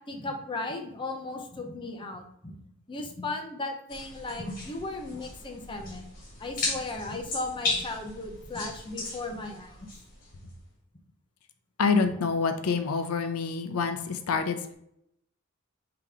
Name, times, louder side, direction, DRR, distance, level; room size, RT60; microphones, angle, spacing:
voice 1, 0.1-2.5 2.9-6.0 6.4-9.7, left 2 dB, 25° left, 3 dB, 0.6 m, -36 dB
sound 1, 3.9-10.6, left 3 dB, 40° left, 1.6 m, -36 dB
voice 2, 11.8-14.7, left 5 dB, 90° left, 7 dB, 0.5 m, -27 dB
3.7 x 2.9 x 4.7 m, 0.74 s
head